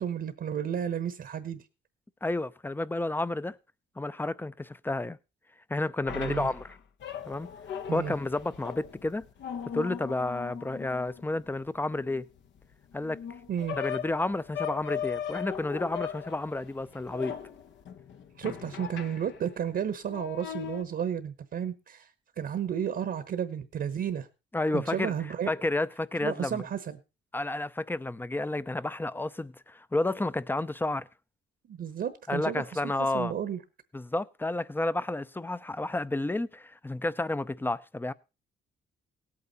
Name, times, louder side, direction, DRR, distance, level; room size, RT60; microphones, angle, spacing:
voice 1, 0.0-1.6 6.1-6.5 7.9-8.1 13.5-13.8 18.4-22.1 22.4-24.3 24.7-25.5 26.2-27.0 31.7-33.6, right 8 dB, 60° right, 1.1 m, -32 dB
voice 2, 2.2-3.6 4.0-5.2 5.7-6.7 7.3-7.5 7.9-9.2 9.7-12.3 12.9-13.2 13.8-17.4 24.5-25.1 25.5-26.6 27.3-31.1 32.3-33.3 33.9-38.1, left 2 dB, 10° left, 0.6 m, -31 dB
sound 1, 6.1-19.6 20.0-20.8, left 8 dB, 65° left, 1.1 m, -39 dB
17.5 x 8.8 x 4.1 m
cardioid pair, 90°, 20 cm